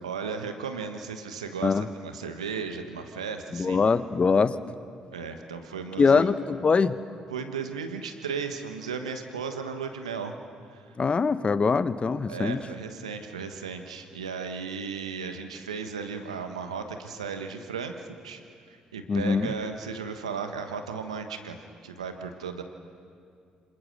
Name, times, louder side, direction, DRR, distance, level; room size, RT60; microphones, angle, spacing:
voice 1, 0.0-3.9 5.1-6.3 7.3-10.3 10.7-10.9 12.3-17.9 18.2-18.4 18.7-21.6 21.8-22.6, right 5 dB, 90° right, 7 dB, 1.3 m, -35 dB
voice 2, 3.5-4.5 6.0-6.9 11.0-12.6 19.1-19.5, left 5 dB, 35° left, 14 dB, 1.0 m, -23 dB
26.5 x 24.5 x 6.5 m, 2.3 s
hypercardioid pair, 50°, 3 cm